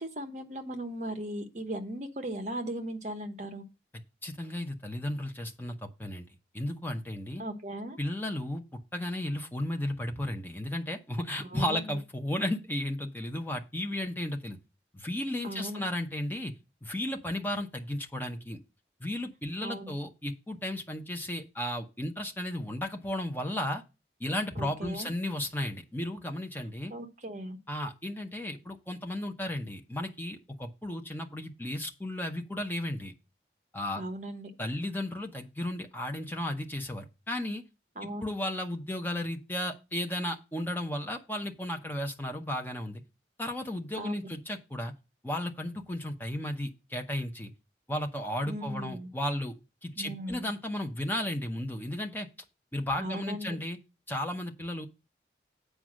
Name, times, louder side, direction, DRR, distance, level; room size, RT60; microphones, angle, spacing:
voice 1, 0.0-3.6 7.4-8.0 11.4-11.8 15.4-15.8 19.6-19.9 24.6-25.1 26.9-27.6 34.0-34.5 38.0-38.2 44.0-44.3 48.5-49.1 50.0-50.5 53.0-53.5, right 1 dB, 40° right, 7 dB, 1.0 m, -37 dB
voice 2, 4.2-6.3 6.5-7.4 8.0-8.6 8.9-14.6 14.9-16.5 16.8-18.6 19.0-23.8 24.2-26.9 27.7-33.1 33.7-34.0 34.6-37.6 38.0-43.0 43.4-44.9 45.2-47.5 47.9-49.5 49.8-52.3 52.7-53.8 54.1-54.9, left 1 dB, 10° left, 3 dB, 0.8 m, -34 dB
7.9 x 4.8 x 6.2 m, 0.28 s
head